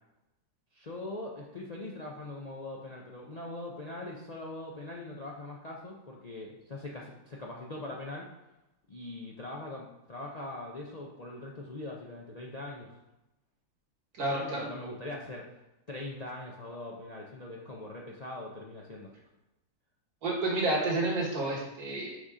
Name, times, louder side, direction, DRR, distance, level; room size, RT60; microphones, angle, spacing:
voice 1, 0.7-8.3 8.9-12.9 14.2-15.4 15.9-19.1, left 2 dB, 40° left, -2 dB, 0.5 m, -41 dB
voice 2, 14.1-14.7 20.2-22.2, right 2 dB, 75° right, -3 dB, 2.2 m, -30 dB
6.2 x 4.1 x 4.9 m, 0.94 s
omnidirectional pair, 1.6 m